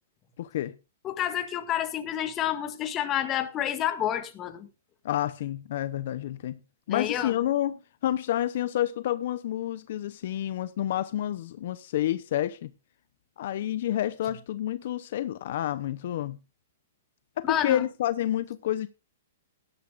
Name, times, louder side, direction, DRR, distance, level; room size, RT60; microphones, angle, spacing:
voice 1, 0.4-0.7 5.0-6.6 6.9-12.7 13.4-16.4 17.4-18.9, left 12 dB, 60° left, 0.7 m, -29 dB
voice 2, 1.0-4.7 6.9-7.3 17.5-17.8, left 11 dB, 25° left, 1.7 m, -29 dB
17.0 x 12.5 x 2.5 m
hypercardioid pair, 145°, 0 cm